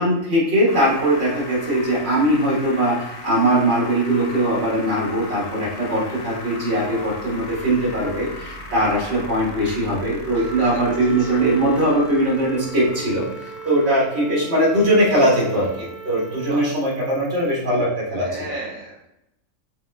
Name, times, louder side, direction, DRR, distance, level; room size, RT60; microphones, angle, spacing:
voice 1, 0.0-18.5, right 1 dB, 50° right, -6 dB, 1.8 m, -20 dB
sound 1, 0.7-17.7, left 2 dB, 80° left, 1.0 m, -39 dB
Wind instrument woodwind instrument, 10.2-16.5, right 5 dB, ahead, 1.1 m, -37 dB
voice 2, 10.3-10.8 11.2-11.3 15.4-15.7 16.5-16.6 18.2-19.1, right 2 dB, 90° right, -4 dB, 1.4 m, -35 dB
5.5 x 2.6 x 2.3 m, 0.86 s
omnidirectional pair, 1.4 m